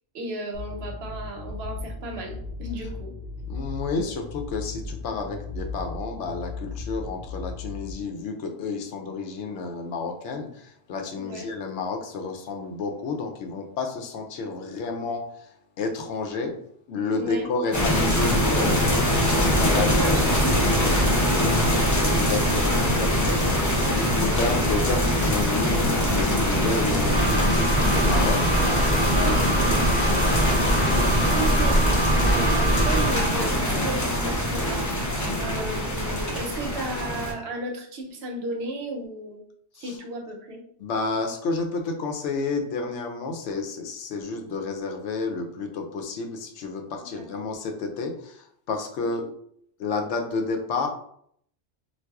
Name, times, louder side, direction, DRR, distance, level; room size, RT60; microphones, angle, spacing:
voice 1, 0.1-3.1 11.1-11.5 17.1-17.5 19.6-21.0 23.5-24.5 29.1-29.8 31.2-39.4 39.8-40.6 47.1-47.5 49.0-49.3, right 2 dB, 70° right, 2 dB, 0.9 m, -34 dB
sound 1, 0.5-7.9, left 3 dB, 60° left, 0.7 m, -36 dB
voice 2, 3.5-15.2 15.8-16.6 16.9-20.4 21.3-23.5 23.9-30.7 39.8-39.9 40.8-49.2 49.8-50.9, left 4 dB, 90° left, 4 dB, 0.9 m, -31 dB
sound 2, 17.7-37.3, equal, 25° left, 0.4 m, -23 dB
sound 3, 27.1-33.4, right 1 dB, 40° left, 1.3 m, -24 dB
4.0 x 2.3 x 2.3 m, 0.67 s
omnidirectional pair, 1.2 m